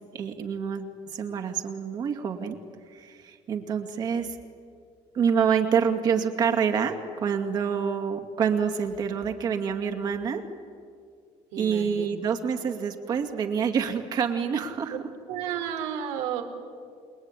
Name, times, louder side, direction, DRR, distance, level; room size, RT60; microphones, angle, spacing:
voice 1, 0.1-2.6 2.9-4.4 5.1-10.4 11.6-15.0, right 7 dB, 40° right, 5 dB, 2.4 m, -27 dB
voice 2, 11.5-12.1 15.3-16.4, right 9 dB, 85° right, 4 dB, 3.9 m, -32 dB
28.5 x 21.0 x 9.9 m, 2.2 s
cardioid pair, 160°, 11 cm